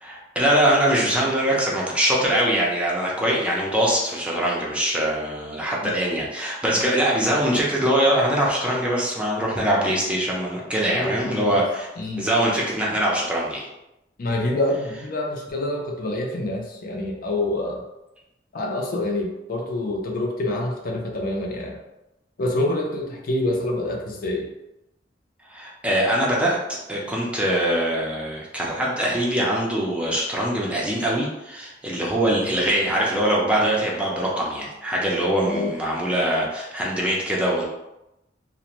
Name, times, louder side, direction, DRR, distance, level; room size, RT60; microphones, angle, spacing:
voice 1, 0.0-11.9 12.2-13.7 25.5-26.6 26.9-37.7, right 1 dB, 5° right, -4 dB, 0.5 m, -23 dB
voice 2, 10.9-11.6 12.0-12.3 14.2-17.8 18.5-21.8 22.4-24.5 35.4-35.7, left 1 dB, 55° left, 0 dB, 0.5 m, -26 dB
2.5 x 2.1 x 2.9 m, 0.92 s
head